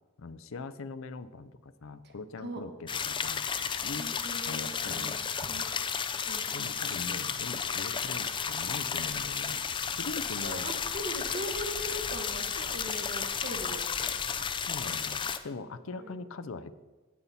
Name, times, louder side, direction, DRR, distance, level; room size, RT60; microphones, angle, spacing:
voice 1, 0.2-3.5 3.8-4.1 4.5-5.2 6.5-9.6 10.0-10.7 14.4-16.8, left 3 dB, 70° left, 13 dB, 0.5 m, -41 dB
sound 1, 2.9-15.4, left 7 dB, 25° left, 0.4 m, -33 dB
voice 2, 3.7-5.1 5.4-5.9 6.3-6.5 10.4-14.1 16.0-16.1, equal, 50° right, 5 dB, 1.2 m, -41 dB
16.0 x 5.5 x 4.2 m, 1.3 s
head